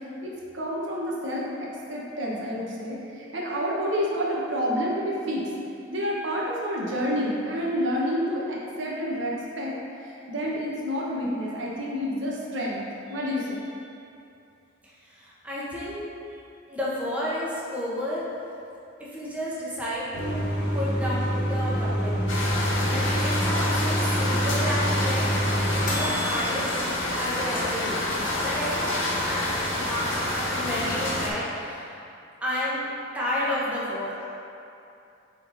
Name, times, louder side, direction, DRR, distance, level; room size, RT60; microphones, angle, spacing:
voice 1, 0.2-5.4 5.9-12.8 13.1-13.8, equal, 70° right, -4 dB, 1.2 m, -29 dB
voice 2, 15.0-16.0 16.7-18.2 19.0-22.4 22.8-28.1 28.4-32.0 32.4-32.9 33.1-34.3, left 1 dB, 5° right, -8 dB, 1.1 m, -32 dB
sound 1, 20.1-26.7, equal, 45° left, 1.2 m, -26 dB
sound 2, 22.3-31.3, left 1 dB, 80° left, 1.5 m, -28 dB
8.5 x 3.9 x 4.0 m, 2.6 s
head